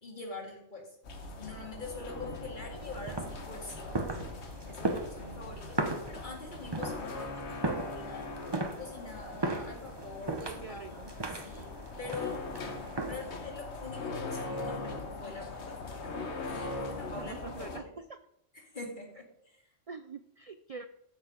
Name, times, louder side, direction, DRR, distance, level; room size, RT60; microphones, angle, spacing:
voice 1, 0.0-0.9 1.4-4.1 4.7-8.3 8.8-12.8 13.0-16.2 16.5-17.9 18.5-19.6, left 3 dB, 40° left, 1 dB, 2.5 m, -44 dB
sound 1, 1.0-17.8, left 3 dB, 65° left, 1.4 m, -41 dB
sound 2, 1.1-7.1, right 3 dB, 65° right, 1.3 m, -50 dB
sound 3, 2.8-13.4, right 2 dB, 25° right, 0.9 m, -37 dB
voice 2, 10.4-11.1 17.1-18.0 19.9-20.9, right 5 dB, 50° right, 10 dB, 0.4 m, -44 dB
14.0 x 6.6 x 5.1 m, 0.79 s
omnidirectional pair, 1.2 m